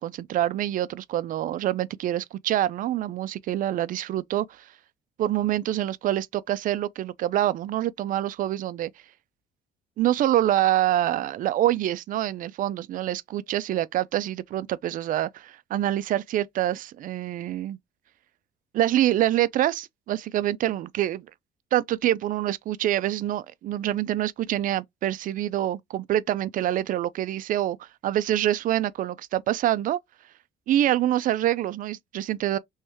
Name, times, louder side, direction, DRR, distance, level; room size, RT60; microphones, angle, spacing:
voice 1, 0.0-4.7 5.2-8.9 10.0-17.8 18.7-21.3 21.7-30.0 30.7-32.6, right 13 dB, 55° right, 0.4 m, -26 dB
3.1 x 3.0 x 3.4 m
cardioid pair, 110°, 17 cm